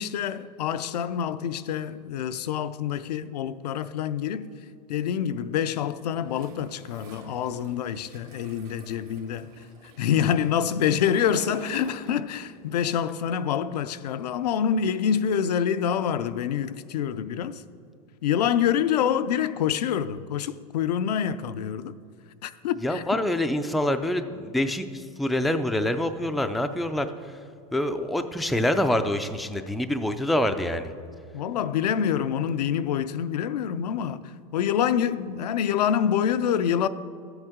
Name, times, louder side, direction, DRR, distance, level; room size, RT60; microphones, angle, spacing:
voice 1, 0.0-4.5 4.9-9.5 9.8-17.6 18.2-21.9 22.4-23.2 31.3-36.9, left 8 dB, 90° left, 0.5 m, -26 dB
Toilet flush, 6.3-12.7 13.0-14.6, right 4 dB, 50° right, 1.2 m, -48 dB
voice 2, 22.8-27.1 27.7-30.9, left 1 dB, ahead, 0.3 m, -26 dB
13.0 x 7.9 x 3.6 m
supercardioid pair, 125°, 20 cm